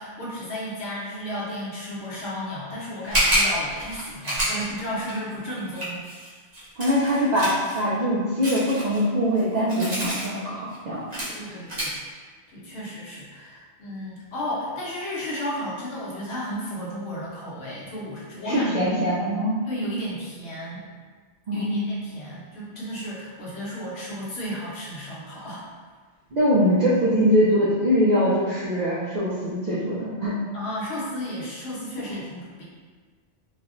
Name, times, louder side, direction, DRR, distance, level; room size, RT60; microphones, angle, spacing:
voice 1, 0.0-6.0 11.3-12.2 12.5-18.9 19.6-20.9 21.5-25.6 30.5-32.6, equal, 65° left, -7 dB, 1.0 m, -33 dB
sound 1, 3.0-7.8 8.4-10.3 10.7-10.8 11.1-11.3 11.7-11.9, equal, 40° right, 0.9 m, -27 dB
voice 2, 6.8-11.0 18.5-19.6 21.5-21.9 26.3-30.3, equal, 60° right, -9 dB, 0.4 m, -22 dB
3.3 x 2.1 x 2.4 m, 1.5 s
omnidirectional pair, 1.2 m